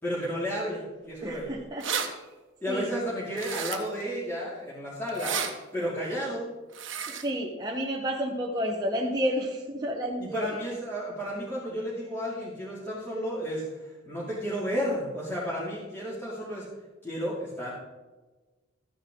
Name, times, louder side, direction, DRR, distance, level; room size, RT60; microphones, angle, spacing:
voice 1, 0.0-1.5 2.6-5.4 5.7-6.5 10.2-16.7 17.0-17.7, equal, 10° left, -9 dB, 2.6 m, -32 dB
voice 2, 1.2-1.9 2.7-2.9 7.1-10.5, equal, 20° right, -2 dB, 1.0 m, -30 dB
sound 1, 1.3-1.4 1.6-2.1 3.4-4.0 5.1-5.5 6.7-7.2, right 7 dB, 65° right, 1.3 m, -32 dB
14.0 x 9.7 x 3.8 m, 1.2 s
head